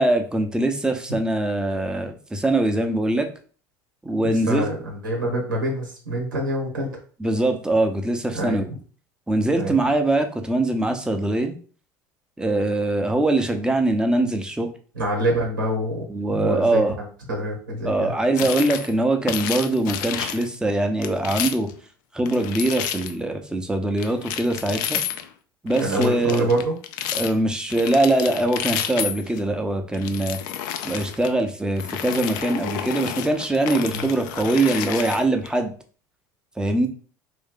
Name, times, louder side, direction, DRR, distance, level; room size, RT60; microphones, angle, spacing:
voice 1, 0.0-3.3 4.0-4.7 7.2-8.7 9.3-11.5 12.4-14.7 16.1-17.0 17.8-21.7 22.1-25.0 25.6-26.5 27.1-30.4 30.8-35.7 36.6-36.9, right 2 dB, 5° right, 5 dB, 0.7 m, -22 dB
voice 2, 4.2-6.9 8.3-8.6 9.6-9.7 14.9-18.1 25.8-26.8 33.9-34.1, right 1 dB, 90° right, 0 dB, 1.0 m, -26 dB
sound 1, 18.4-18.9 19.3-20.5 21.0-21.7 22.3-23.1 24.0-25.3 25.7-27.3 27.7-29.4 29.9-31.3 31.8-35.5, left 9 dB, 65° left, 0.4 m, -30 dB
3.1 x 2.7 x 3.7 m, 0.41 s
hypercardioid pair, 70°, 11 cm